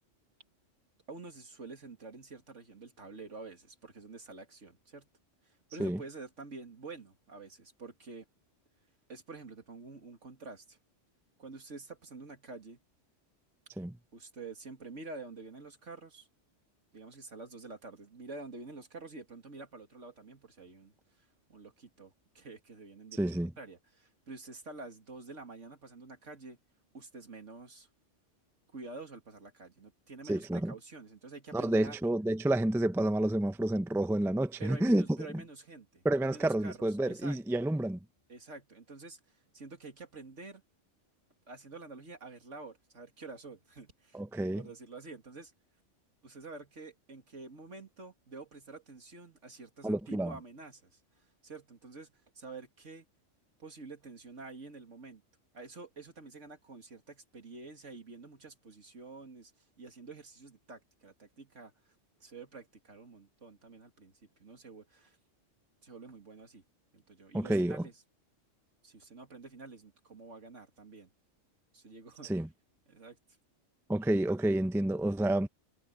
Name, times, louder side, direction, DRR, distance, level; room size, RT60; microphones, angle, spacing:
voice 1, 1.1-5.1 5.4-8.3 9.1-10.8 11.4-12.8 14.1-16.3 16.9-26.6 26.9-27.9 28.7-32.0 34.6-37.4 38.3-40.6 41.5-44.2 44.5-45.5 46.2-53.0 53.6-55.2 55.5-61.7 62.2-64.1 64.4-65.2 65.8-66.6 66.9-68.0 68.8-71.1 71.7-72.3 72.9-73.2, right 3 dB, 75° right, 2.8 m, -48 dB
voice 2, 23.2-23.5 30.3-30.7 31.5-35.0 36.0-38.0 44.1-44.6 49.8-50.3 67.3-67.8 72.2-72.5 73.9-75.5, right 1 dB, 5° right, 0.5 m, -29 dB
omnidirectional pair, 1.3 m